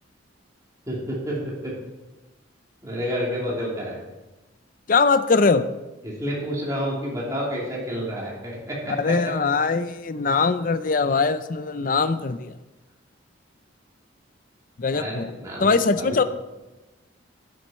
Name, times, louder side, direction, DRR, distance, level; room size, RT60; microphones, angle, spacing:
voice 1, 0.9-1.7 2.8-4.0 6.0-9.1 11.0-11.2 14.9-16.2, equal, 15° right, -5 dB, 2.7 m, -30 dB
voice 2, 4.9-5.6 9.0-12.5 14.8-15.3 15.6-16.2, left 4 dB, 45° left, 12 dB, 0.5 m, -21 dB
12.5 x 6.5 x 4.3 m, 1.1 s
head